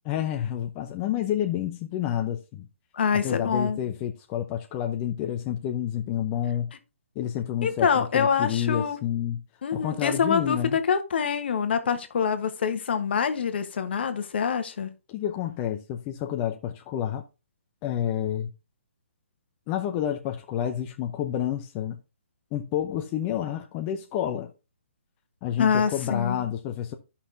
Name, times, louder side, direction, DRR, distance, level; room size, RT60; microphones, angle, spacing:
voice 1, 0.1-2.7 3.1-6.7 7.2-9.4 9.7-10.8 15.1-17.2 17.8-18.5 19.7-22.0 22.5-24.5 25.4-26.9, left 10 dB, 25° left, 0.6 m, -29 dB
voice 2, 2.9-3.8 7.6-9.0 9.6-14.9 25.6-26.4, left 6 dB, 55° left, 1.1 m, -25 dB
13.0 x 5.7 x 2.7 m
figure-of-eight pair, 135°, 7 cm